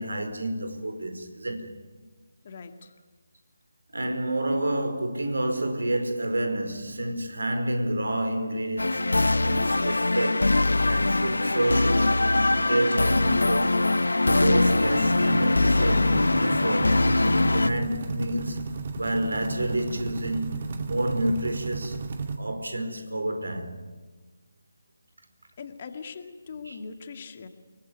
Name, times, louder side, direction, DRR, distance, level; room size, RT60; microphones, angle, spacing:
voice 1, 0.0-1.7 3.9-10.6 10.9-12.1 12.5-13.9 14.2-17.0 17.5-18.6 18.9-22.0 22.4-23.8 26.6-26.8, right 1 dB, 70° right, 4.5 m, -29 dB
voice 2, 2.4-2.9 25.6-27.5, left 5 dB, 35° left, 2.2 m, -41 dB
sound 1, 8.8-17.7, left 2 dB, 70° left, 1.0 m, -22 dB
sound 2, 14.8-22.4, right 4 dB, 40° right, 2.3 m, -34 dB
29.5 x 19.5 x 9.6 m
figure-of-eight pair, 155°, 0 cm